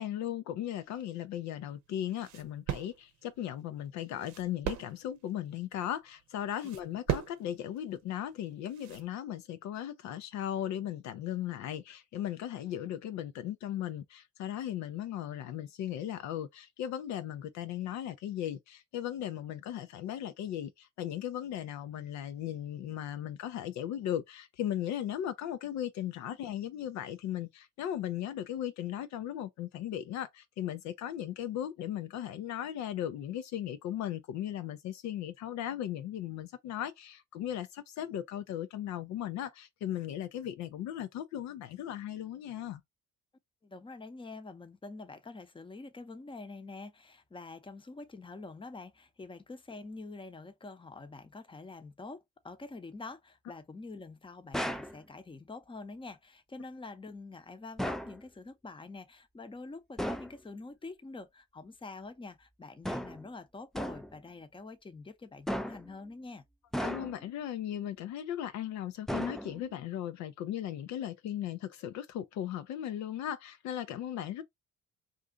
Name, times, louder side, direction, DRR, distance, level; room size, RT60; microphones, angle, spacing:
voice 1, 0.0-42.8 66.8-74.4, left 11 dB, 65° left, 0.5 m, -37 dB
sound 1, 0.8-9.1, right 11 dB, 65° right, 0.8 m, -41 dB
voice 2, 43.6-66.4, left 3 dB, 15° left, 0.7 m, -46 dB
sound 2, 54.5-55.0 57.8-58.2 60.0-60.4 62.8-63.3 63.8-64.2 65.5-65.9 66.7-67.3 69.1-69.7, equal, ahead, 0.3 m, -35 dB
2.5 x 2.4 x 3.7 m
supercardioid pair, 60°, 30 cm